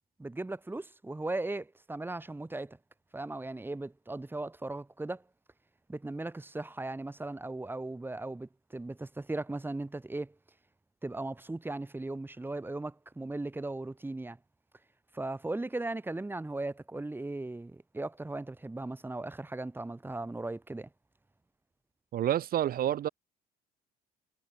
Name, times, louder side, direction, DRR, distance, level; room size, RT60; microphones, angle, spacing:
voice 1, 0.2-2.8 3.1-5.2 5.9-10.3 11.0-14.4 15.1-20.9, right 2 dB, 10° right, 7.6 m, -37 dB
voice 2, 22.1-23.1, right 11 dB, 60° right, 6.2 m, -28 dB
cardioid pair, 110°, 17 cm